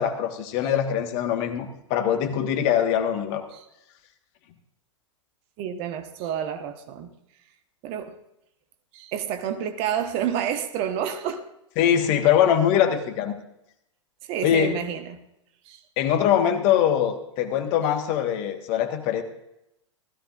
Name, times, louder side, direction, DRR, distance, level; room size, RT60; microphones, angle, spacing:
voice 1, 0.0-3.4 11.8-13.3 14.4-14.8 16.0-19.2, left 9 dB, 40° left, 1.5 m, -22 dB
voice 2, 5.6-7.1 7.8-8.1 8.9-11.4 14.3-15.2 15.7-15.8, right 9 dB, 40° right, 1.2 m, -29 dB
16.5 x 14.0 x 2.5 m
figure-of-eight pair, 100°, 16 cm